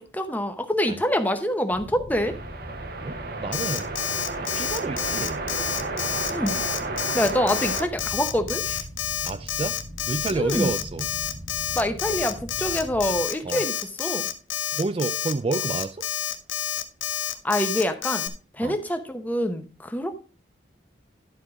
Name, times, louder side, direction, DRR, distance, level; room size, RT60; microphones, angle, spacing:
voice 1, 0.0-2.3 6.3-6.6 7.1-8.8 10.3-10.7 11.7-14.3 17.4-20.1, left 1 dB, 10° left, 0.8 m, -26 dB
sound 1, 1.7-13.2, equal, 85° right, 3.6 m, -40 dB
sound 2, 2.1-7.9, right 3 dB, 50° right, 0.9 m, -32 dB
voice 2, 3.0-4.0 4.4-5.5 9.2-9.8 10.1-11.1 13.4-13.7 14.7-16.1 18.6-18.8, right 3 dB, 30° right, 0.3 m, -29 dB
Alarm, 3.5-18.3, left 12 dB, 85° left, 0.9 m, -29 dB
11.5 x 4.6 x 4.8 m
head